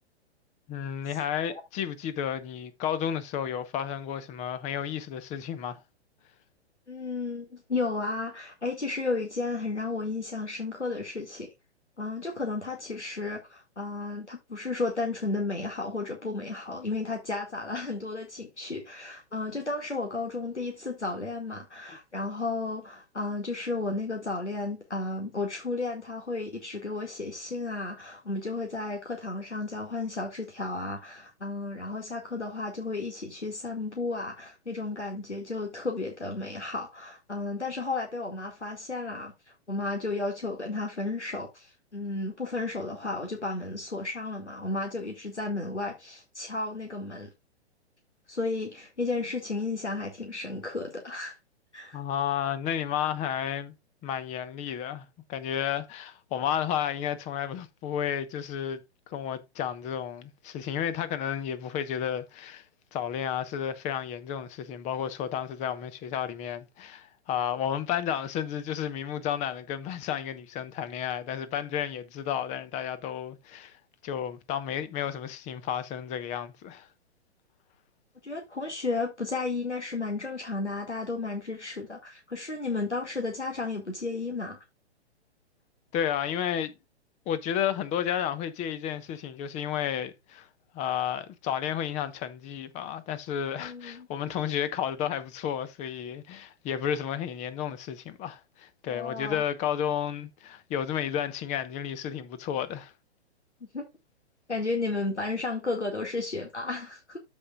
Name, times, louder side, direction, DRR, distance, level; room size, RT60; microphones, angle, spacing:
voice 1, 0.7-5.8 51.9-53.7 54.0-58.8 59.1-62.6 62.9-73.7 74.0-76.9 85.9-86.7 87.3-90.5 90.7-102.9, left 9 dB, 20° left, 1.0 m, -32 dB
voice 2, 6.9-11.5 12.0-39.3 39.7-47.3 48.3-51.4 51.7-52.0 78.2-84.6 93.6-94.1 98.9-99.4 103.7-103.8 104.5-107.2, left 3 dB, 85° left, 2.1 m, -33 dB
13.5 x 5.3 x 2.4 m
figure-of-eight pair, 115°, 34 cm